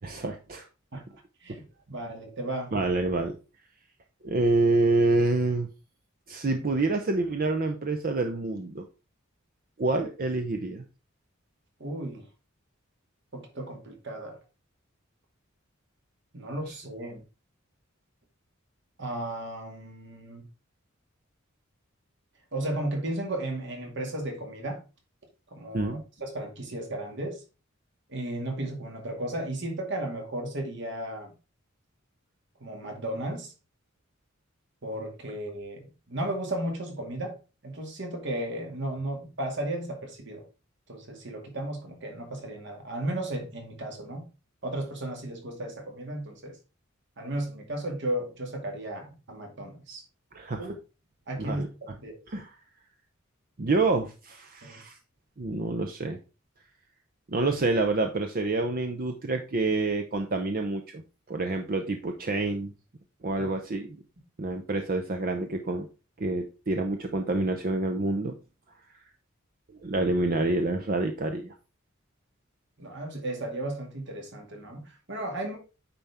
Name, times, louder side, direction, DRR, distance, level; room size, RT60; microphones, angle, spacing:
voice 1, 0.0-0.7 2.7-3.4 4.2-5.7 6.3-8.8 9.8-10.8 25.7-26.0 50.3-50.7 51.4-51.7 52.3-52.4 53.6-55.0 55.4-56.2 57.3-61.0 61.3-62.7 63.2-64.0 64.4-65.9 66.2-68.4 69.8-71.5, right 2 dB, 45° right, 0.7 m, -27 dB
voice 2, 1.4-2.7 11.8-12.2 13.3-14.4 16.3-17.2 19.0-20.4 22.5-24.8 25.5-27.4 28.1-31.3 32.6-33.5 34.8-37.3 37.6-40.4 40.9-44.2 44.6-46.6 47.2-50.0 50.6-50.7 51.3-51.7 52.0-52.2 54.6-54.8 63.4-63.5 72.8-75.6, right 1 dB, 60° right, 2.3 m, -34 dB
9.2 x 4.3 x 3.5 m
head